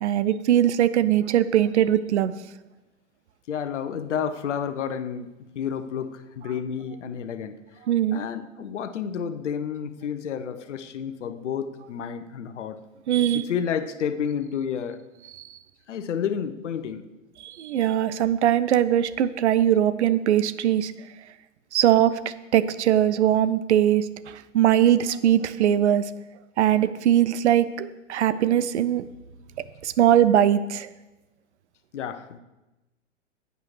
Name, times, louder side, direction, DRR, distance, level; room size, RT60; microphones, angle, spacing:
voice 1, 0.0-2.3 7.9-8.2 13.1-13.4 17.4-20.9 21.7-26.1 26.6-29.0 29.8-30.9, right 11 dB, 60° right, 15 dB, 0.7 m, -21 dB
voice 2, 3.5-7.6 8.1-12.8 13.3-15.0 15.9-17.0 31.9-32.4, left 7 dB, 65° left, 10 dB, 0.9 m, -30 dB
15.0 x 8.3 x 3.3 m, 1.0 s
figure-of-eight pair, 100°, 38 cm